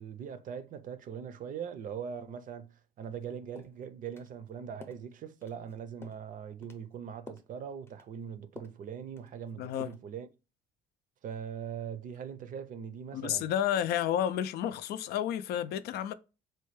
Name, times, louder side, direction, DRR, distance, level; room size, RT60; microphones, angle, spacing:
voice 1, 0.0-10.3 11.2-13.5, right 7 dB, 50° right, 0.5 m, -41 dB
sound 1, 3.1-3.2 3.6-3.8 4.2-4.3 4.8-5.0 5.4-5.7 6.0-6.3 6.6-6.9 7.3-7.5 7.9-8.1 8.6-8.8 9.2-9.5 9.8-10.1, left 3 dB, 15° left, 0.6 m, -51 dB
voice 2, 9.6-9.9 13.1-16.1, left 10 dB, 75° left, 0.4 m, -31 dB
4.3 x 2.2 x 3.1 m
cardioid pair, 110°, 17 cm